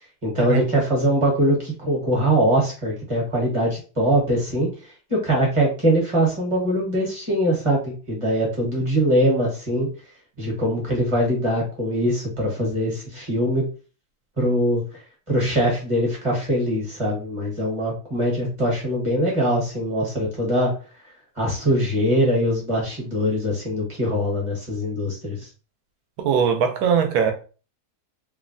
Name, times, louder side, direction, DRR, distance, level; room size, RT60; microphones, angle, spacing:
voice 1, 0.2-4.7 5.1-9.9 10.4-13.7 14.4-14.8 15.3-20.7 21.4-25.5, equal, 25° right, -3 dB, 0.9 m, -22 dB
voice 2, 26.2-27.3, right 7 dB, 75° right, 5 dB, 1.0 m, -20 dB
3.2 x 2.1 x 2.5 m, 0.36 s
omnidirectional pair, 1.7 m